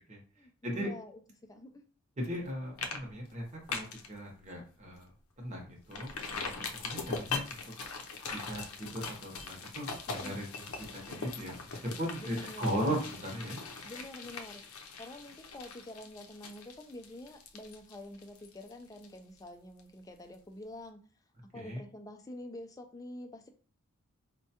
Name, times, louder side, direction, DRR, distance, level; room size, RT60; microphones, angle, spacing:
voice 1, 0.4-1.2 1.5-1.8 10.2-10.4 12.2-13.1 13.8-21.0 21.5-23.5, left 1 dB, 15° left, 5 dB, 0.4 m, -47 dB
sound 1, 2.2-2.5 2.8-3.0 3.3-4.1 4.5-4.6 5.0-5.1 5.9-19.5 19.8-19.9, left 4 dB, 85° left, 0.6 m, -41 dB
voice 2, 2.2-5.1 5.4-7.6 8.3-13.6 21.5-21.8, equal, 35° right, 0 dB, 0.8 m, -38 dB
4.4 x 2.2 x 2.8 m, 0.41 s
head